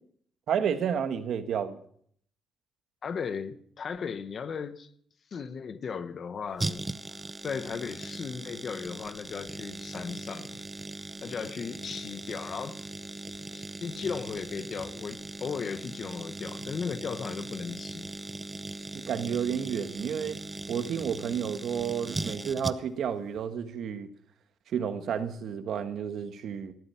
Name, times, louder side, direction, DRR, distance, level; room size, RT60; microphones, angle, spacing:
voice 1, 0.5-1.8 18.9-20.4 20.7-24.1 24.7-26.7, right 8 dB, 70° right, 1.6 m, -31 dB
voice 2, 3.0-4.9 5.3-6.9 7.4-10.6 11.2-12.8 13.5-18.1, left 6 dB, 45° left, 1.2 m, -36 dB
sound 1, 6.6-23.1 23.3-23.4, right 2 dB, 20° right, 0.7 m, -39 dB
19.0 x 13.0 x 5.8 m
cardioid pair, 120°, 0 cm